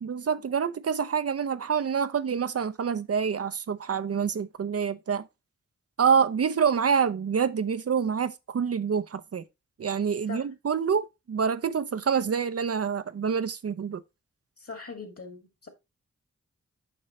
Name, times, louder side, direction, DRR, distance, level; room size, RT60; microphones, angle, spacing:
voice 1, 0.0-5.3 6.0-9.4 9.8-14.0, right 6 dB, 55° right, 0.6 m, -27 dB
voice 2, 14.6-15.7, left 4 dB, 50° left, 2.2 m, -41 dB
6.8 x 5.5 x 3.1 m
cardioid pair, 45°, 29 cm